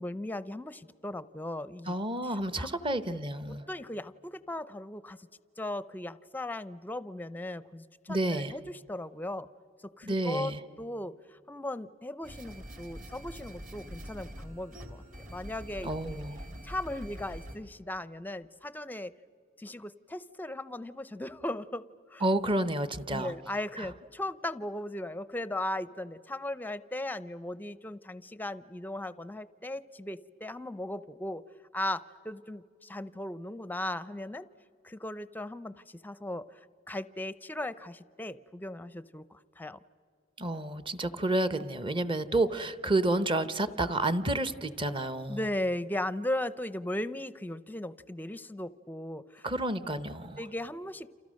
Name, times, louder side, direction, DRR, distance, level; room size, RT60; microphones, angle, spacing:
voice 1, 0.0-1.9 2.6-2.7 3.1-3.2 3.7-5.3 5.6-9.5 9.8-16.2 16.6-19.1 19.6-22.2 23.1-31.4 31.7-34.5 34.8-36.6 36.9-39.8 45.3-49.5 49.8-49.9 50.4-51.1, left 1 dB, 10° left, 16 dB, 0.5 m, -37 dB
voice 2, 1.9-3.7 8.1-8.5 10.0-10.6 15.8-16.4 22.2-23.3 23.8-23.9 40.4-45.4 49.4-50.4, right 2 dB, 25° right, 13 dB, 0.9 m, -30 dB
sound 1, 12.2-17.6, equal, 45° right, 2.8 m, -44 dB
29.0 x 28.0 x 6.4 m, 2.3 s
head